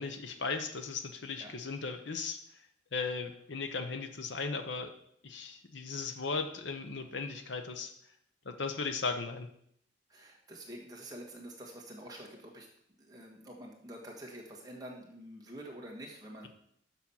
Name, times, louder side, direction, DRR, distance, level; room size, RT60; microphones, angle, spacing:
voice 1, 0.0-2.4 2.9-4.9 5.2-7.9 8.4-9.5, left 4 dB, 65° left, 7 dB, 0.8 m, -37 dB
voice 2, 10.1-12.7 13.0-16.5, right 1 dB, 20° right, -1 dB, 1.5 m, -47 dB
7.1 x 5.9 x 5.6 m, 0.68 s
head